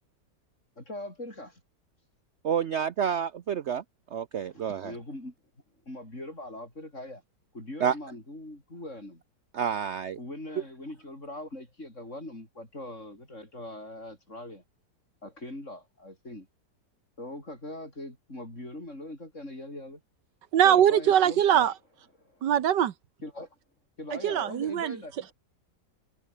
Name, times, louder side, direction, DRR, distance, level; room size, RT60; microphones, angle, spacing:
voice 1, 0.8-1.6 4.5-5.3 5.9-7.2 7.5-9.2 10.2-14.6 15.2-16.5 17.2-20.0 20.6-21.7 22.2-22.5 23.2-23.5 24.0-25.3, left 1 dB, 40° left, 8.4 m, -41 dB
voice 2, 2.4-3.8 4.1-4.9 7.8-8.0 9.5-10.2, right 8 dB, 55° right, 0.8 m, -29 dB
voice 3, 20.5-21.7 22.4-22.9 24.1-25.0, right 10 dB, 80° right, 1.7 m, -22 dB
omnidirectional pair, 1.9 m